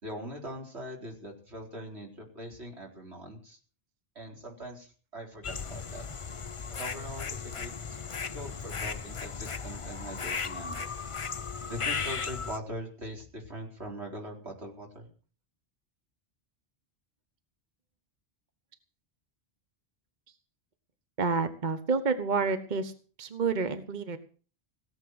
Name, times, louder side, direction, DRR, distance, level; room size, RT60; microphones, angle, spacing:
voice 1, 0.0-3.6 4.2-6.1 6.8-8.0 8.3-10.8 11.7-15.1, equal, 90° right, 0 dB, 4.5 m, -42 dB
sound 1, 5.4-12.6, left 5 dB, 35° left, 0.7 m, -36 dB
voice 2, 21.2-22.9 23.2-24.2, right 4 dB, 45° right, 9 dB, 1.2 m, -29 dB
17.5 x 7.8 x 7.9 m, 0.41 s
omnidirectional pair, 1.1 m